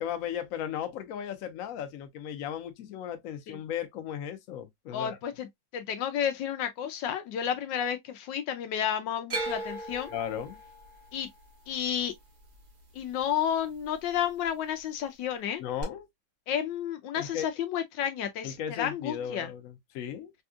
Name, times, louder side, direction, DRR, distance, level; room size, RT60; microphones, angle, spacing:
voice 1, 0.0-5.2 10.1-10.6 15.6-16.1 17.2-17.5 18.4-20.3, left 9 dB, 90° left, 0.7 m, -36 dB
voice 2, 4.9-10.1 11.1-11.3 11.7-12.1 12.9-15.6 16.5-19.5, left 9 dB, 70° left, 1.2 m, -31 dB
sound 1, 9.3-13.5 13.8-14.5 15.8-15.9, right 2 dB, 35° right, 0.9 m, -38 dB
3.4 x 2.7 x 2.3 m
omnidirectional pair, 2.2 m